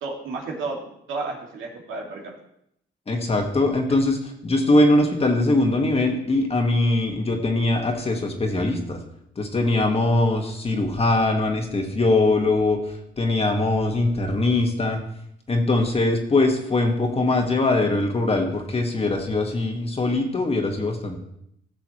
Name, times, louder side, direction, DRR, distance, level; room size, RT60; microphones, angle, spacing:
voice 1, 0.0-2.2, right 3 dB, 85° right, -1 dB, 2.4 m, -32 dB
voice 2, 3.1-9.0 9.4-12.8 13.2-15.0 15.5-21.2, left 2 dB, 30° left, 2 dB, 1.8 m, -21 dB
16.5 x 6.9 x 3.2 m, 0.74 s
cardioid pair, 90°, 20 cm